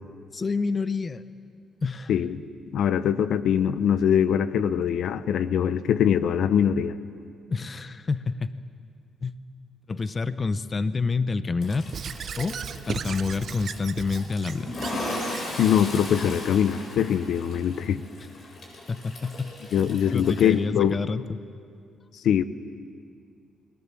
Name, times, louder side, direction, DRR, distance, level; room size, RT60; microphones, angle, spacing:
voice 1, 0.3-1.2 1.8-2.1 7.5-8.5 9.2-9.3 9.9-11.9 12.4-12.6 12.9-14.8 18.4-18.5 18.9-19.8 20.1-21.2, left 4 dB, 35° left, 13 dB, 0.9 m, -28 dB
voice 2, 2.1-2.4 2.7-6.9 15.6-18.0 19.7-21.0 22.2-22.4, left 9 dB, 70° left, 13 dB, 0.9 m, -22 dB
Toilet flush, 11.6-20.5, left 1 dB, 55° left, 7.9 m, -37 dB
Squeak / Writing, 11.9-15.7, right 7 dB, 55° right, 0.9 m, -36 dB
29.0 x 21.5 x 7.7 m, 2.2 s
cardioid pair, 90°, 0 cm